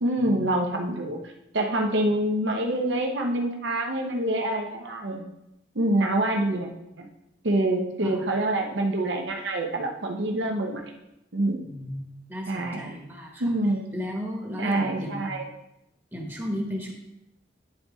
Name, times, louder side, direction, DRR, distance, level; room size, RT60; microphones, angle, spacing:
voice 1, 0.0-1.2 1.5-5.3 5.7-6.7 7.0-7.1 7.4-10.8 11.3-11.6 12.5-13.0 13.4-13.9 14.6-15.5, right 1 dB, 85° right, 2 dB, 0.8 m, -26 dB
voice 2, 11.6-13.6 13.9-15.3 16.1-16.9, equal, 10° right, -1 dB, 1.0 m, -34 dB
10.0 x 4.1 x 3.5 m, 0.86 s
head